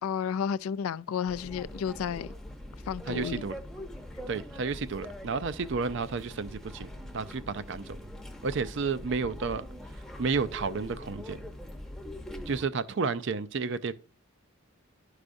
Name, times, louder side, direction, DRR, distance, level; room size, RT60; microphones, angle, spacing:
voice 1, 0.0-2.3 2.9-3.4, left 7 dB, 85° left, 0.4 m, -32 dB
sound 1, 1.3-12.6, left 1 dB, ahead, 0.7 m, -43 dB
voice 2, 3.1-3.6 4.3-8.0 8.4-9.6 10.2-11.5 12.5-13.9, right 4 dB, 55° right, 0.4 m, -31 dB
12.0 x 4.9 x 2.6 m
head